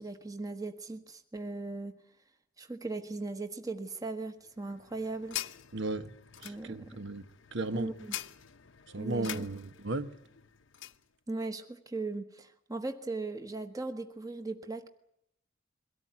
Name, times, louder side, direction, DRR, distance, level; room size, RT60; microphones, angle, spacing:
voice 1, 0.0-2.0 2.6-5.4 6.4-7.0 7.7-8.2 9.0-9.5 11.3-14.9, right 3 dB, 15° right, 1.2 m, -38 dB
sound 1, 4.4-11.0, left 12 dB, 65° left, 0.9 m, -45 dB
voice 2, 5.7-6.1 6.4-7.2 7.5-7.9 8.9-10.1, right 2 dB, 60° right, 1.3 m, -35 dB
23.0 x 18.0 x 9.4 m
head